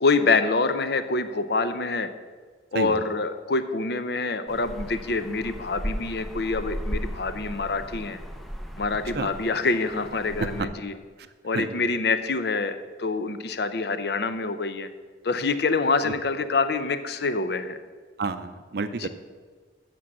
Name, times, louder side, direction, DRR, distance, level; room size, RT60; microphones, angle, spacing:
voice 1, 0.0-2.1 2.7-8.2 8.8-11.0 11.4-14.9 15.2-17.8 19.0-19.1, left 3 dB, 60° left, 11 dB, 0.6 m, -26 dB
sound 1, 4.5-10.6, equal, ahead, 0.6 m, -36 dB
voice 2, 11.5-11.9 16.1-16.2 18.2-19.1, right 4 dB, 60° right, 10 dB, 0.5 m, -30 dB
8.5 x 6.2 x 7.4 m, 1.5 s
head